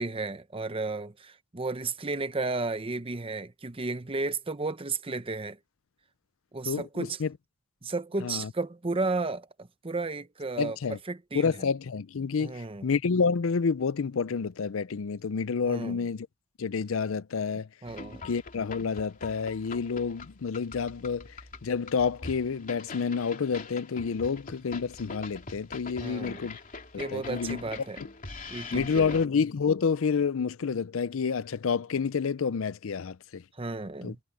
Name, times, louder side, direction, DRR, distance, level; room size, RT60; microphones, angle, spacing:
voice 1, 0.0-5.6 6.5-7.2 7.8-10.8 11.1-11.5 12.4-12.9 15.7-16.0 17.8-18.3 26.0-26.4 27.0-28.0 28.5-29.2 33.6-34.2, right 3 dB, 25° right, 0.8 m, -33 dB
voice 2, 6.6-7.3 8.2-8.5 10.6-11.0 11.3-16.3 16.6-17.7 18.2-26.6 26.9-27.6 28.7-33.4 34.0-34.1, left 5 dB, 80° left, 0.5 m, -29 dB
sound 1, 17.9-29.3, left 3 dB, 40° left, 3.0 m, -43 dB
head